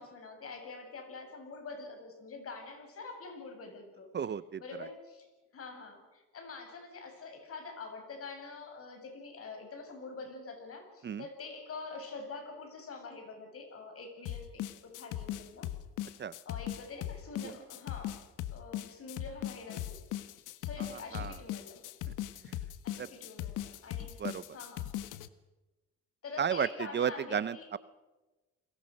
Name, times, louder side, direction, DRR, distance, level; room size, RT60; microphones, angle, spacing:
voice 1, 0.0-4.1 4.6-5.3 5.5-15.7 16.5-18.2 18.5-20.0 20.6-21.8 22.8-24.2 24.5-24.9 26.2-27.7, left 4 dB, 45° left, 5 dB, 7.9 m, -45 dB
voice 2, 4.1-4.9 11.0-11.2 16.2-16.3 17.4-17.5 20.8-21.4 22.5-22.6 23.0-23.1 24.2-24.6 26.4-27.8, right 8 dB, 35° right, 16 dB, 0.8 m, -34 dB
sound 1, 14.3-25.3, left 13 dB, 75° left, 1.5 m, -39 dB
30.0 x 22.0 x 6.6 m, 1.1 s
cardioid pair, 105°, 31 cm